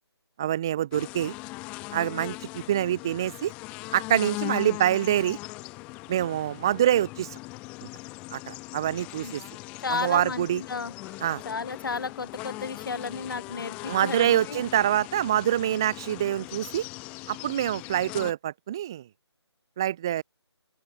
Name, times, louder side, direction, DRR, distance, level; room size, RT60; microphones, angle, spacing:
voice 1, 0.4-1.3 1.9-3.5 3.9-5.4 6.1-7.4 7.8-7.9 8.3-9.4 9.9-10.6 11.2-11.4 13.9-16.9 17.3-19.1 19.8-20.2, right 11 dB, 10° right, 0.6 m, -26 dB
sound 1, 0.9-18.3, left 23 dB, 10° left, 1.4 m, -40 dB
voice 2, 9.8-14.6, left 4 dB, 50° left, 3.6 m, -33 dB
open air
hypercardioid pair, 175°, 14 cm